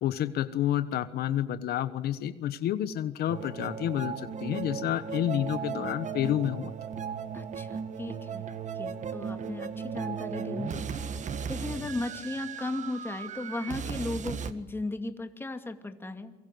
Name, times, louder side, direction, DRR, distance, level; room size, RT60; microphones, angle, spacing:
voice 1, 0.0-6.7, left 11 dB, 70° left, 12 dB, 1.2 m, -29 dB
sound 1, 3.3-14.5, right 7 dB, 45° right, 1.7 m, -36 dB
voice 2, 7.3-8.5 8.7-10.9 11.5-16.3, left 2 dB, 15° left, 7 dB, 2.4 m, -36 dB
29.0 x 23.5 x 7.8 m, 0.99 s
cardioid pair, 110°, 17 cm